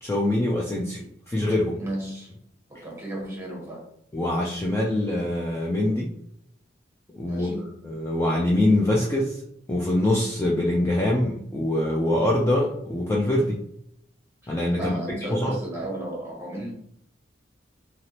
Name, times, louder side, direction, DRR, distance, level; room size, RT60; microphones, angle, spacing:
voice 1, 0.0-1.0 1.3-1.8 4.1-6.1 7.1-7.5 7.8-9.4 9.7-13.6 14.5-15.0 15.3-15.6, left 1 dB, 15° left, -2 dB, 0.4 m, -24 dB
voice 2, 1.8-2.3 2.7-3.8 7.3-7.6 14.7-16.7, right 1 dB, 15° right, -2 dB, 1.1 m, -34 dB
3.2 x 2.8 x 2.8 m, 0.73 s
head